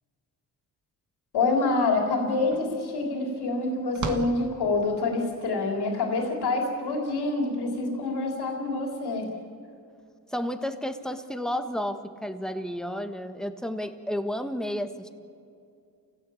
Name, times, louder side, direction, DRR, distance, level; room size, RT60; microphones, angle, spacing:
voice 1, 1.3-9.3, left 3 dB, 80° left, 2 dB, 3.7 m, -26 dB
sound 1, 1.9-2.0 2.2-5.3, right 4 dB, 50° right, 1.9 m, -38 dB
voice 2, 10.3-15.1, equal, ahead, 7 dB, 1.6 m, -32 dB
28.5 x 17.0 x 8.7 m, 2.5 s
cardioid pair, 115°, 39 cm